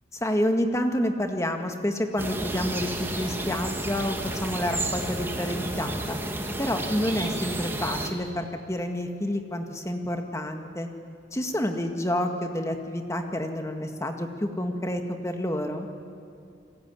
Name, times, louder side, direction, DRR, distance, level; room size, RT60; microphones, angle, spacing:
voice 1, 0.1-6.2 6.6-10.9 11.3-15.9, left 1 dB, 15° left, 5 dB, 1.8 m, -29 dB
sound 1, 2.2-8.1, right 1 dB, 10° right, 2.0 m, -31 dB
29.5 x 21.0 x 9.6 m, 2.5 s
head